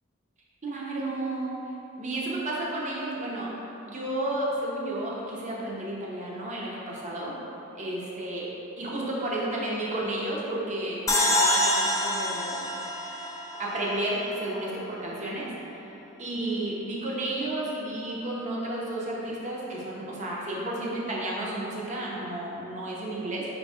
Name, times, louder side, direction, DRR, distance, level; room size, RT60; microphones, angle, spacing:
voice 1, 0.6-1.6 2.0-3.5 3.9-7.3 7.8-8.5 8.8-12.7 13.6-15.5 16.2-23.5, right 1 dB, 35° right, -5 dB, 0.7 m, -32 dB
sound 1, 11.1-14.4, left 1 dB, 15° left, 0.3 m, -26 dB
4.9 x 2.3 x 4.1 m, 3.0 s
head